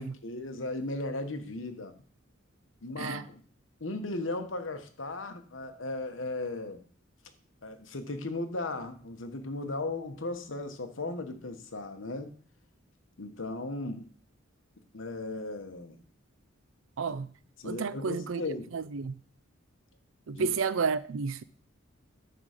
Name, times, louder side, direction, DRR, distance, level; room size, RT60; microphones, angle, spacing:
voice 1, 0.0-1.9 2.8-3.4 3.8-6.8 7.6-12.3 13.2-14.1 14.9-16.0 17.1-17.2 17.6-18.7 20.3-20.5, left 2 dB, 70° left, 1.1 m, -36 dB
voice 2, 17.0-17.3 17.6-18.4 18.7-19.2 20.3-21.4, right 5 dB, 75° right, 0.5 m, -31 dB
9.8 x 3.8 x 6.6 m
head